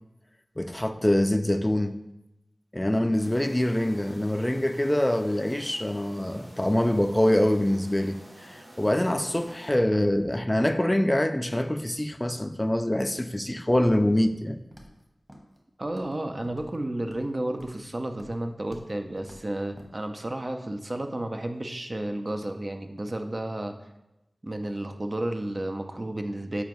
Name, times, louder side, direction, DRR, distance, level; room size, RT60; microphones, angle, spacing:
voice 1, 0.6-2.0 2.7-14.6, left 1 dB, 20° left, 9 dB, 0.4 m, -25 dB
sound 1, 3.2-9.7, equal, 75° right, 2.2 m, -50 dB
Walk footsteps, 14.7-15.0 15.3-15.6 15.8-16.2 16.4-17.3 17.6-17.8 18.1-18.4 18.7-18.9 19.2-19.4 19.8-19.9, equal, 10° right, 1.1 m, -48 dB
voice 2, 15.8-23.7 24.4-26.6, right 1 dB, 40° right, 6 dB, 0.6 m, -32 dB
7.2 x 4.7 x 3.1 m, 0.95 s
wide cardioid pair, 60°, 0 cm